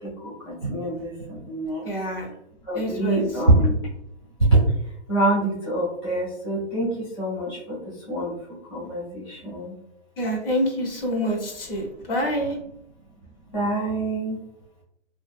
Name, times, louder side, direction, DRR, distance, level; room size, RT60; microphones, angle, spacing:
voice 1, 0.7-1.1 1.5-1.8 2.7-3.7 5.1-6.9 7.2-7.6 8.1-8.3 8.7-9.7 13.5-14.4, right 1 dB, 25° left, -9 dB, 0.4 m, -24 dB
voice 2, 1.8-2.3 2.7-3.3 10.2-12.6, equal, 50° left, 0 dB, 0.9 m, -26 dB
2.5 x 2.5 x 2.3 m, 0.75 s
hypercardioid pair, 170°, 36 cm